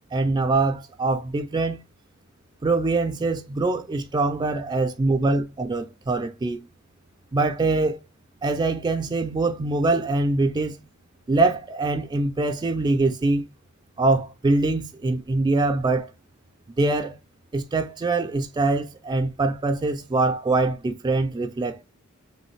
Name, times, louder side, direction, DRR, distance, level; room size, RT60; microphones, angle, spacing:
voice 1, 0.1-1.8 2.6-6.6 7.3-8.0 8.4-10.8 11.3-13.5 14.0-16.1 16.8-17.2 17.5-21.8, right 3 dB, 20° right, 0.3 m, -23 dB
3.1 x 3.0 x 3.1 m
head